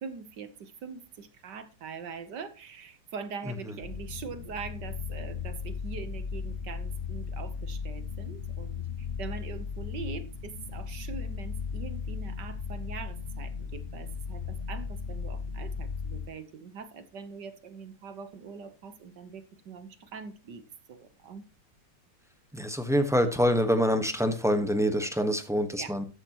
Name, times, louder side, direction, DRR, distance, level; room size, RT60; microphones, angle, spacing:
voice 1, 0.0-20.6 20.9-21.4 25.8-25.9, right 5 dB, 60° right, 11 dB, 1.6 m, -42 dB
sound 1, 3.8-16.3, left 6 dB, 40° left, 1.0 m, -36 dB
voice 2, 22.5-26.0, equal, ahead, 7 dB, 0.8 m, -25 dB
13.0 x 10.5 x 3.0 m, 0.32 s
omnidirectional pair, 2.3 m